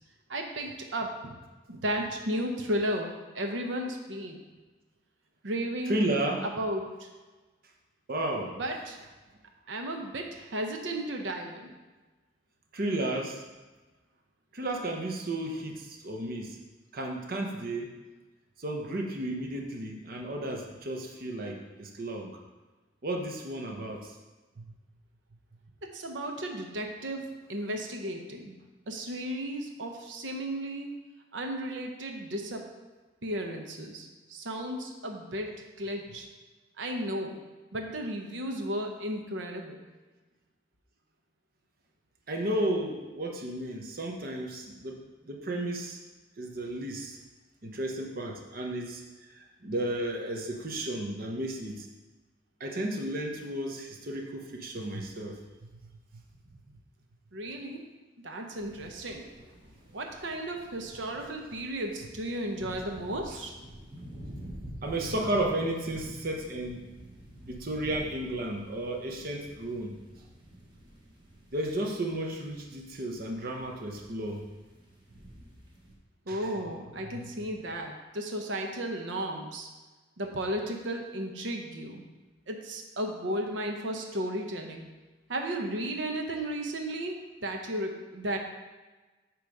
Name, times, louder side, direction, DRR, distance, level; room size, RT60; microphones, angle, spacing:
voice 1, 0.3-1.4 1.7-4.4 5.4-6.0 6.4-7.1 8.5-9.0 9.7-11.8 25.8-27.2 27.5-28.6 28.9-30.9 31.3-32.7 33.2-36.3 36.8-37.4 37.7-39.8 57.3-57.8 58.2-59.3 59.9-63.5 76.3-79.7 80.2-82.0 82.5-84.9 85.3-88.4, right 1 dB, 80° right, 3 dB, 0.9 m, -34 dB
voice 2, 5.9-6.5 8.1-8.5 12.7-13.4 14.5-16.6 16.9-17.9 18.6-22.3 23.0-24.1 24.6-24.7 42.3-46.0 46.4-47.2 47.6-49.0 49.4-51.9 52.6-55.4 64.8-66.9 67.5-70.0 71.5-74.5 76.3-76.4, right 1 dB, 55° right, 2 dB, 0.9 m, -33 dB
sound 1, 58.5-75.9, right 1 dB, 25° right, 1.2 m, -48 dB
8.2 x 3.1 x 5.3 m, 1.2 s
head